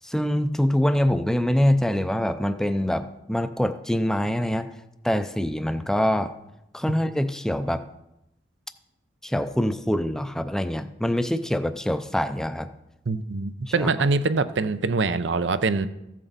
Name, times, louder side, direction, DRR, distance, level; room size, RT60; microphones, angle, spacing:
voice 1, 0.0-4.7 5.0-6.3 6.7-7.9 9.2-12.7 13.8-13.9, equal, 5° left, 10 dB, 0.4 m, -24 dB
voice 2, 13.1-15.9, right 3 dB, 85° right, 12 dB, 0.6 m, -24 dB
14.5 x 7.5 x 4.0 m, 0.88 s
head